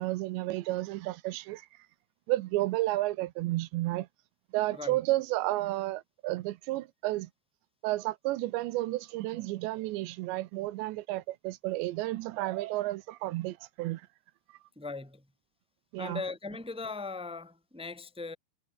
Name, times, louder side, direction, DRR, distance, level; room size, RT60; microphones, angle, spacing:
voice 1, 0.0-1.7 2.3-4.1 4.5-7.3 7.8-14.0 15.9-16.2, right 18 dB, 85° right, 3.0 m, -32 dB
voice 2, 14.8-15.2 16.0-18.3, left 3 dB, ahead, 2.3 m, -39 dB
omnidirectional pair, 5.2 m